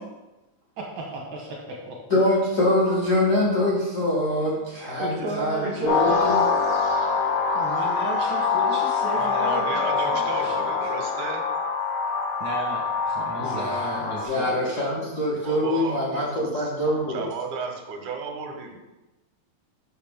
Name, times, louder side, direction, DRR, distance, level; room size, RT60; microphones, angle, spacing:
voice 1, 0.8-2.0 5.0-6.4 7.5-10.6 12.4-14.6, right 2 dB, 75° right, -1 dB, 1.0 m, -34 dB
voice 2, 2.1-6.4 13.4-17.2, left 1 dB, 85° left, -6 dB, 0.7 m, -24 dB
sound 1, 5.9-14.3, left 5 dB, 65° left, 1.3 m, -24 dB
voice 3, 9.1-11.5 15.4-16.7 17.1-18.8, right 5 dB, 90° right, 4 dB, 2.3 m, -34 dB
6.6 x 6.0 x 3.5 m, 1.1 s
omnidirectional pair, 3.3 m